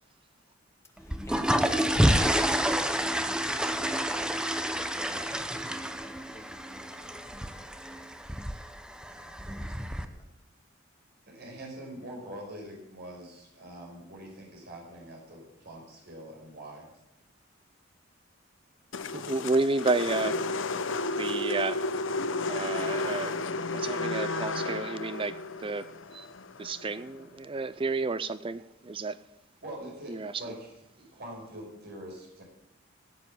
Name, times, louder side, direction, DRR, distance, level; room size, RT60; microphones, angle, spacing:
voice 1, 1.0-8.1 9.0-10.3, left 1 dB, 15° left, 2 dB, 2.2 m, -48 dB
sound 1, 1.0-10.0, equal, 5° right, 0.8 m, -29 dB
voice 2, 11.3-16.9 29.6-30.7 31.0-32.4, right 1 dB, 55° right, -1 dB, 5.6 m, -44 dB
sound 2, 18.9-27.2, left 2 dB, 70° left, 0.8 m, -32 dB
voice 3, 19.1-20.4 21.2-21.8 22.5-23.3 23.6-26.3 26.6-29.2 30.1-30.3, right 3 dB, 25° right, 15 dB, 0.5 m, -31 dB
16.5 x 8.3 x 7.3 m, 0.80 s
head